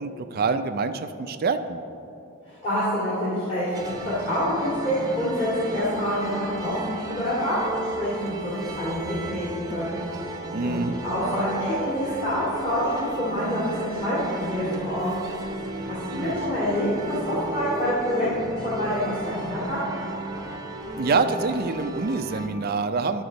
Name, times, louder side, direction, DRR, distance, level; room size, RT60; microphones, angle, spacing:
voice 1, 0.0-1.8 10.5-11.0 16.2-16.5 21.0-23.2, right 4 dB, 45° right, 9 dB, 0.4 m, -26 dB
voice 2, 2.5-10.0 10.6-15.1 15.8-18.3 18.6-19.8, equal, 30° left, -11 dB, 2.1 m, -27 dB
sound 1, 3.7-22.5, right 1 dB, 15° right, 0.8 m, -34 dB
13.0 x 6.1 x 3.9 m, 2.7 s
head